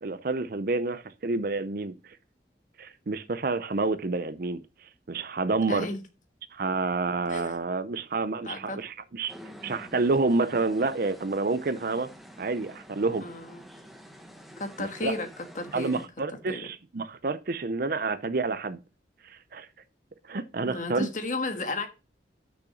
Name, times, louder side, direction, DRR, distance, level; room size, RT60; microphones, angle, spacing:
voice 1, 0.0-2.2 2.8-4.6 5.1-5.9 6.5-9.3 9.6-12.1 12.4-13.3 14.8-15.1 15.7-18.8 19.2-19.7 20.3-21.1, right 3 dB, 55° right, 0.6 m, -29 dB
voice 2, 5.7-6.0 7.3-7.5 8.4-8.8 13.2-13.6 14.6-15.3 15.5-16.0 16.5-16.7 20.6-21.9, left 2 dB, 45° left, 1.4 m, -33 dB
sound 1, 9.3-16.1, equal, ahead, 1.0 m, -48 dB
6.3 x 5.9 x 5.9 m
head